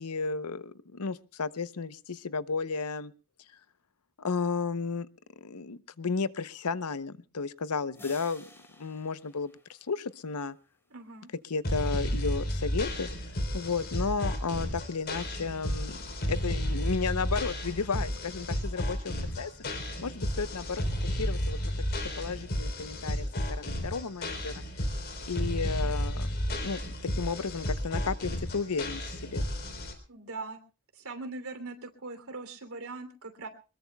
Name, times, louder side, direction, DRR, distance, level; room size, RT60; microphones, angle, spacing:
voice 1, 0.0-3.1 4.2-5.1 5.4-8.5 8.8-9.5 9.9-10.6 11.4-13.1 13.5-16.0 16.3-19.5 20.0-21.7 22.2-24.6 25.3-26.8 27.1-29.5, left 4 dB, 90° left, 15 dB, 0.8 m, -33 dB
sound 1, 7.9-10.4, left 1 dB, 10° left, 3.6 m, -53 dB
voice 2, 10.9-11.3 30.1-30.6 30.9-33.5, right 3 dB, 70° right, 7 dB, 3.0 m, -41 dB
sound 2, 11.6-29.9, equal, 50° left, 3.7 m, -32 dB
23.0 x 21.0 x 2.3 m, 0.34 s
head